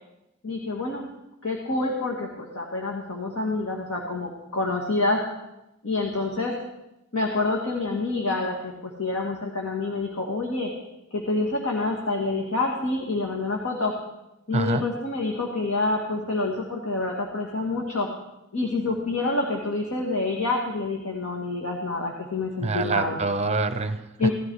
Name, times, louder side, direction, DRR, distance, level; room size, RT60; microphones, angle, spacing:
voice 1, 0.4-1.1 1.4-5.2 5.8-6.5 7.1-10.7 11.1-13.9 14.5-18.1 18.5-23.2 24.2-24.3, left 2 dB, 80° left, -1 dB, 2.1 m, -27 dB
voice 2, 14.5-14.9 22.6-24.3, right 3 dB, 30° right, 11 dB, 0.7 m, -26 dB
17.0 x 13.0 x 4.8 m, 0.90 s
head